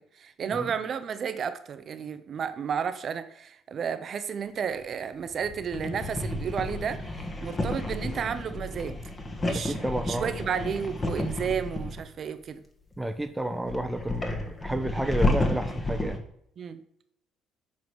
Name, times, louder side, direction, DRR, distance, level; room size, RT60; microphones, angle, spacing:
voice 1, 0.0-9.0 9.4-9.8 10.0-12.6 16.6-16.8, right 7 dB, 50° right, 0.7 m, -32 dB
sound 1, 4.8-12.1 12.9-13.0 13.7-16.2, left 2 dB, 30° left, 1.5 m, -31 dB
voice 2, 9.5-10.3 13.0-16.2, right 1 dB, 10° right, 0.9 m, -31 dB
7.5 x 4.6 x 4.7 m
hypercardioid pair, 55°, 0 cm